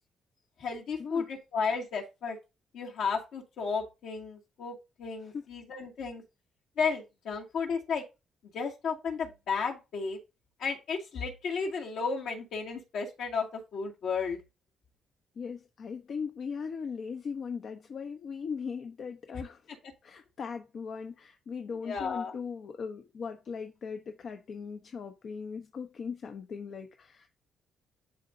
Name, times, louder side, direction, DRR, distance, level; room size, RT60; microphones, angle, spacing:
voice 1, 0.6-2.4 2.7-6.2 6.8-8.0 8.5-10.2 10.6-14.4 21.8-22.3, left 5 dB, 75° left, 2.2 m, -33 dB
voice 2, 15.4-19.6 20.0-27.3, left 5 dB, 55° left, 0.8 m, -39 dB
11.5 x 3.9 x 2.7 m
cardioid pair, 90°, 0 cm